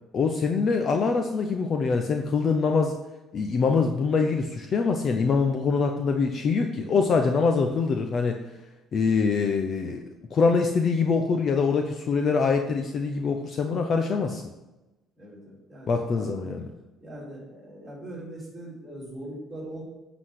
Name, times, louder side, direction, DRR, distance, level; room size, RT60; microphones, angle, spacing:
voice 1, 0.1-2.9 3.3-8.4 8.9-10.0 10.3-14.4 15.9-16.7, left 4 dB, 30° left, 4 dB, 0.6 m, -24 dB
voice 2, 15.2-16.4 17.0-19.8, right 1 dB, 10° right, -6 dB, 3.8 m, -41 dB
7.9 x 5.9 x 6.4 m, 1.0 s
cardioid pair, 180°, 0 cm